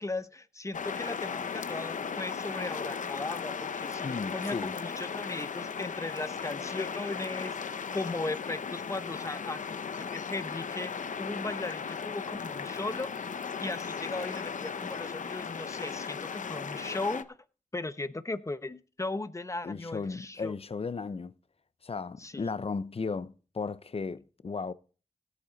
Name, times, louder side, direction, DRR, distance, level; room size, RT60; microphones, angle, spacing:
voice 1, 0.0-13.1 13.6-17.4 17.7-20.5 22.2-22.5, left 2 dB, 25° left, 0.9 m, -37 dB
sound 1, 0.7-17.2, left 6 dB, 80° left, 0.8 m, -37 dB
voice 2, 4.0-4.7 19.6-21.3 21.8-24.7, left 4 dB, 50° left, 0.7 m, -35 dB
17.0 x 8.5 x 4.0 m
wide cardioid pair, 70°, 13 cm